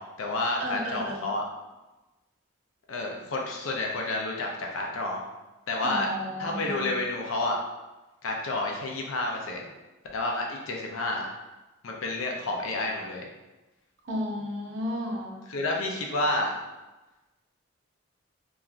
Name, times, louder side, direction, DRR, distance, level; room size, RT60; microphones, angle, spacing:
voice 1, 0.0-1.4 2.9-5.3 5.7-6.1 6.4-7.6 8.2-9.7 10.1-11.2 11.8-13.3 15.5-16.5, left 2 dB, 80° left, 0 dB, 0.5 m, -30 dB
voice 2, 0.6-1.2 5.8-6.9 14.0-15.4, equal, 65° right, -3 dB, 0.7 m, -33 dB
3.0 x 2.4 x 2.4 m, 1.1 s
head